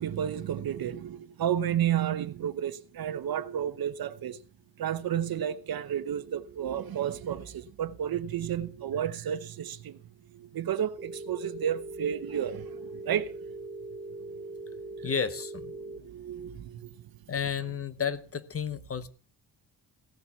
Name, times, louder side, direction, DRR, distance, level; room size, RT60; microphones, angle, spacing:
voice 1, 0.0-4.4 4.8-10.0 10.3-13.3 16.0-16.9, right 10 dB, 65° right, 0.9 m, -32 dB
Telephone, 11.0-16.0, right 2 dB, 15° right, 1.0 m, -41 dB
voice 2, 15.0-15.7 17.3-19.1, left 7 dB, 35° left, 0.7 m, -32 dB
16.0 x 7.1 x 5.8 m
wide cardioid pair, 180°, 39 cm